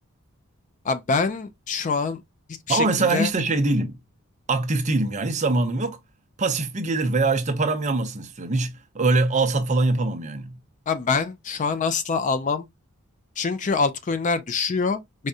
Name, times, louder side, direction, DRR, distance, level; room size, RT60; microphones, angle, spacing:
voice 1, 0.8-2.2 2.7-3.3 10.9-12.7 13.4-15.0, left 4 dB, 35° left, 0.4 m, -25 dB
voice 2, 2.7-3.9 4.5-6.0 6.4-10.5, right 3 dB, 30° right, 0.6 m, -23 dB
4.8 x 2.2 x 2.6 m
head